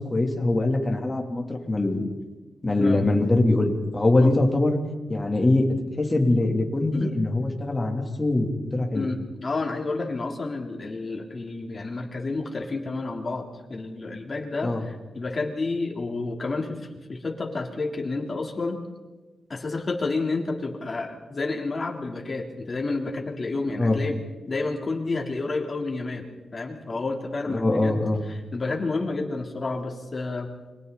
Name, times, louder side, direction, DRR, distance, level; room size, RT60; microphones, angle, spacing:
voice 1, 0.0-2.1 2.6-4.8 5.1-5.7 6.0-9.1 14.6-14.8 23.8-24.0 27.5-28.2, left 2 dB, 20° left, 2 dB, 3.3 m, -23 dB
voice 2, 8.9-18.8 19.5-24.2 24.5-28.0 28.3-30.5, left 3 dB, 35° left, 1 dB, 3.6 m, -30 dB
30.0 x 24.5 x 4.2 m, 1.2 s
wide cardioid pair, 110°, 0 cm